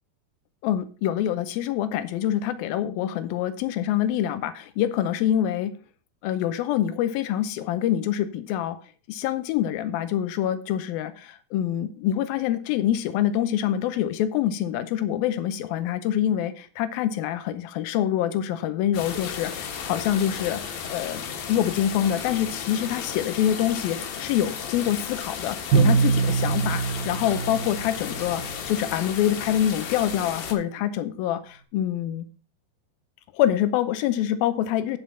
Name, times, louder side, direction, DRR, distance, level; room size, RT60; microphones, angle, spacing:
voice 1, 0.6-5.7 6.2-8.8 9.1-32.3 33.3-35.0, left 11 dB, 85° left, 12 dB, 2.2 m, -26 dB
sound 1, 18.9-30.5, left 7 dB, 65° left, 2.9 m, -34 dB
Bowed string instrument, 25.7-28.5, right 5 dB, 65° right, 2.7 m, -23 dB
10.0 x 5.9 x 5.6 m, 0.39 s
omnidirectional pair, 5.1 m